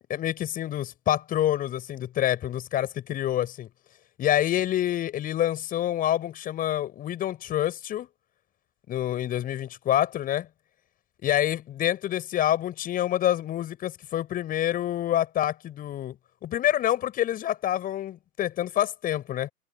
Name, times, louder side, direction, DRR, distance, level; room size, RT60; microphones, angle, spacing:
voice 1, 0.1-3.7 4.2-8.1 8.9-10.5 11.2-16.2 16.4-19.5, left 12 dB, 20° left, 7.0 m, -27 dB
figure-of-eight pair, 125°, 44 cm